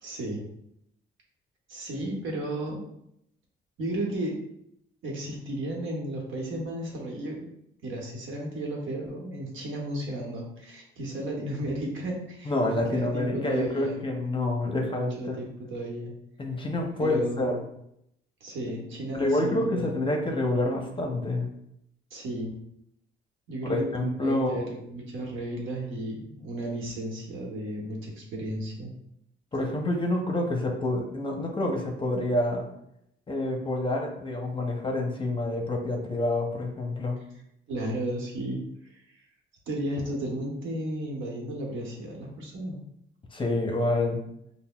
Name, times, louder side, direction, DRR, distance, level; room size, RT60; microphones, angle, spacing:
voice 1, 0.0-0.4 1.7-2.8 3.8-4.4 5.0-7.5 7.8-14.0 14.8-16.1 17.0-17.6 18.4-19.9 22.1-22.5 23.5-28.9 37.7-39.2 39.7-42.8, right 1 dB, 75° right, -1 dB, 1.0 m, -34 dB
voice 2, 12.4-15.4 16.4-17.6 19.1-21.5 23.6-24.7 29.5-32.7 33.3-37.2 43.3-44.2, left 1 dB, 25° left, 1 dB, 0.7 m, -28 dB
5.4 x 2.1 x 2.3 m, 0.76 s
cardioid pair, 90°, 20 cm